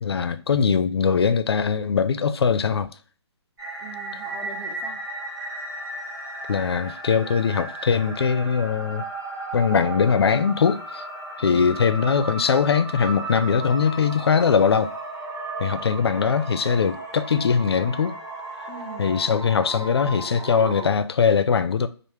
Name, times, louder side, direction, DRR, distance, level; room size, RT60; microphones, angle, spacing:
voice 1, 0.0-2.9 6.5-9.0 9.5-11.0 11.4-14.9 15.6-18.2 19.0-21.9, left 6 dB, 60° left, 0.5 m, -21 dB
sound 1, 3.6-20.9, right 2 dB, 45° right, 1.8 m, -35 dB
voice 2, 3.8-5.0 11.4-12.0 18.7-19.2, right 3 dB, 10° right, 0.4 m, -42 dB
5.4 x 2.1 x 3.2 m
figure-of-eight pair, 140°, 15 cm